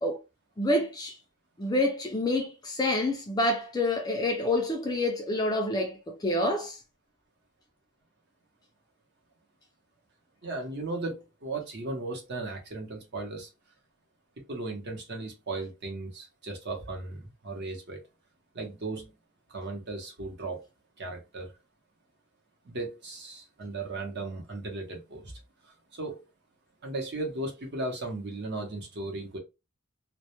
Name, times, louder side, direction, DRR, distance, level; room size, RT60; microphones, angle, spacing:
voice 1, 0.6-1.2 1.6-6.8, left 1 dB, 15° left, 0.3 m, -27 dB
voice 2, 10.4-13.5 14.5-18.0 18.5-19.1 19.5-20.7 21.0-21.5 22.6-25.3 25.6-26.2 26.8-29.4, right 2 dB, 50° right, 0.7 m, -36 dB
2.1 x 2.1 x 2.8 m
head